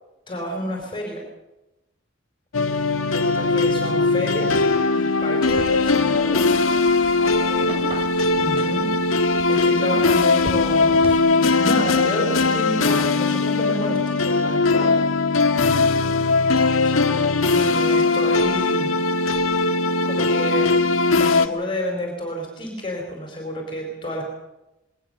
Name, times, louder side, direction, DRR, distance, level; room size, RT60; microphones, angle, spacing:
voice 1, 0.3-1.3 3.1-4.7 4.9-6.5 8.3-15.0 16.8-18.9 20.0-24.2, equal, 25° left, 1 dB, 4.4 m, -30 dB
sound 1, 2.5-21.5, left 3 dB, 80° left, 1.5 m, -20 dB
sound 2, 5.5-11.2, equal, 30° right, 2.9 m, -39 dB
voice 2, 7.2-7.9 9.7-10.3 15.5-16.4, equal, 80° right, -1 dB, 6.9 m, -37 dB
21.5 x 19.5 x 6.7 m, 0.96 s
head